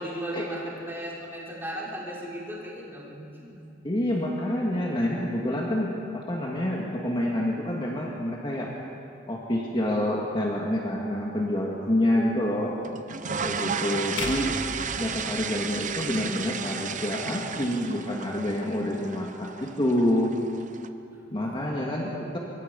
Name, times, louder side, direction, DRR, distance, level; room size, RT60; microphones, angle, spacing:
voice 1, 0.0-3.7 14.9-15.9 21.1-22.1, equal, 10° right, -6 dB, 5.2 m, -38 dB
voice 2, 3.8-8.7 9.3-12.7 13.4-14.5 15.0-20.4 21.3-22.4, left 1 dB, 25° left, -2 dB, 2.1 m, -27 dB
sound 1, 12.8-20.9, right 6 dB, 40° right, 0.9 m, -33 dB
sound 2, 14.2-16.4, left 3 dB, 75° left, 2.0 m, -37 dB
25.0 x 23.0 x 5.4 m, 2.8 s
head